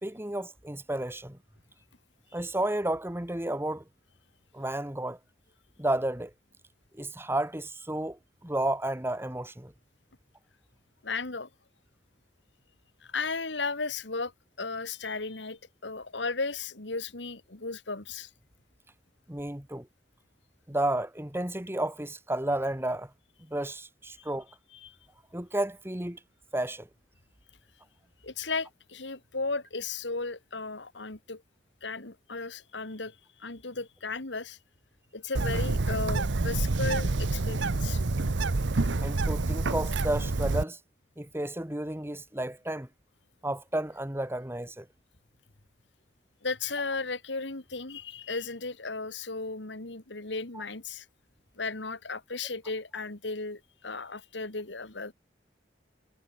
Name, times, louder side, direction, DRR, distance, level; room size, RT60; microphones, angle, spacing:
voice 1, 0.0-1.4 2.3-3.8 4.5-5.2 5.8-6.3 6.9-9.7 19.3-19.9 20.7-23.1 23.5-24.5 25.3-26.2 26.5-26.9 39.0-40.8 41.2-42.9 43.4-44.9 50.5-50.6, right 1 dB, 15° right, 2.0 m, -32 dB
voice 2, 11.0-11.5 13.0-14.3 14.6-18.3 24.8-25.0 28.2-31.4 31.8-34.6 35.1-38.0 46.4-51.1 51.6-55.1, left 3 dB, 75° left, 2.3 m, -35 dB
Bird, 35.3-40.6, right 3 dB, 80° right, 0.9 m, -27 dB
head